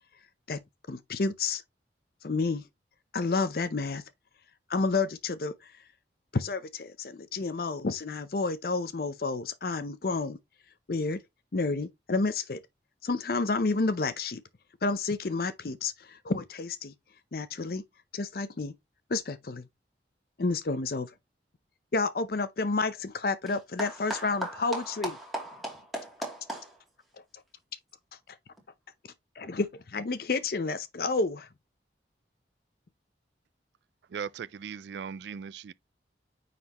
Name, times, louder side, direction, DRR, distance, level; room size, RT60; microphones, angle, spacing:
voice 1, 0.9-1.6 2.2-2.6 3.1-4.0 4.7-5.7 6.3-10.4 10.9-11.2 11.5-12.6 13.0-14.4 14.8-16.9 17.3-17.8 18.1-18.7 19.1-19.6 20.4-21.1 21.9-25.1 29.4-31.5, left 3 dB, 55° left, 0.6 m, -30 dB
voice 2, 23.8-26.8, right 1 dB, ahead, 2.6 m, -37 dB
voice 3, 34.1-35.7, right 7 dB, 75° right, 0.4 m, -38 dB
9.4 x 4.2 x 2.9 m
head